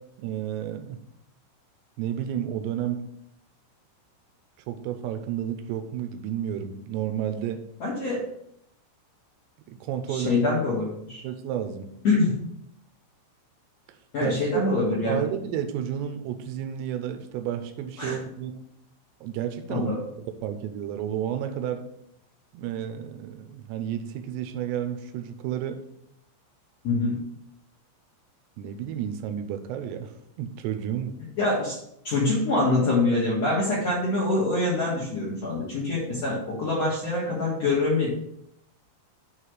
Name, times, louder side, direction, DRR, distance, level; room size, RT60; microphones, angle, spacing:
voice 1, 0.2-1.0 2.0-3.0 4.7-7.6 9.7-10.4 11.2-11.9 14.2-14.4 14.9-18.5 19.2-19.9 20.4-21.8 22.5-25.8 28.6-31.2, right 10 dB, 80° right, 7 dB, 2.5 m, -31 dB
voice 2, 7.8-8.3 10.1-11.2 12.0-12.4 14.1-15.2 18.0-18.2 19.7-20.0 26.8-27.2 31.4-31.8 32.0-38.1, left 2 dB, 70° left, -7 dB, 1.5 m, -25 dB
7.5 x 3.2 x 6.3 m, 0.74 s
omnidirectional pair, 5.4 m